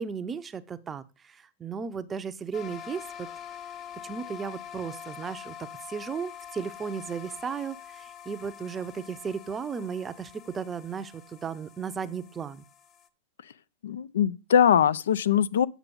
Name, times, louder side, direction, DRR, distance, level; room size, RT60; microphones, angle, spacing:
voice 1, 0.0-3.3 4.0-12.6, right 6 dB, 20° right, 0.6 m, -35 dB
sound 1, 2.5-13.1, left 9 dB, 30° left, 0.7 m, -45 dB
voice 2, 13.8-15.7, left 8 dB, 85° left, 0.5 m, -22 dB
8.3 x 6.0 x 5.2 m
hypercardioid pair, 130°, 0 cm